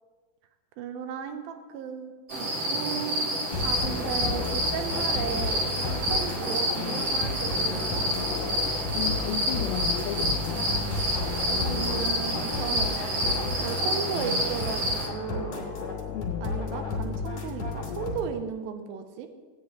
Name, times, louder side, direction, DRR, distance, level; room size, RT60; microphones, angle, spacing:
voice 1, 0.8-3.3 3.6-8.1 11.5-13.2 13.6-15.8 16.4-19.3, right 7 dB, 80° right, 7 dB, 2.6 m, -35 dB
sound 1, 2.3-15.1, equal, 50° right, 1.5 m, -29 dB
sound 2, 3.5-18.3, left 4 dB, 50° left, 3.3 m, -33 dB
voice 2, 8.9-10.7 16.1-16.5, left 11 dB, 85° left, 2 dB, 2.5 m, -33 dB
17.0 x 9.6 x 3.0 m, 1.4 s
omnidirectional pair, 4.4 m